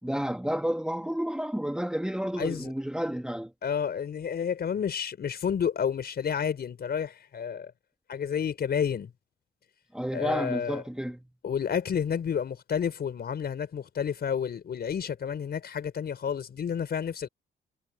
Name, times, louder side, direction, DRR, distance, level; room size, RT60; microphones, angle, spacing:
voice 1, 0.0-3.5 9.9-11.3, equal, 5° right, 2.4 m, -31 dB
voice 2, 2.4-2.7 3.6-7.7 8.1-9.1 10.1-10.8 11.4-17.3, left 7 dB, 55° left, 5.1 m, -30 dB
cardioid pair, 90°, 20 cm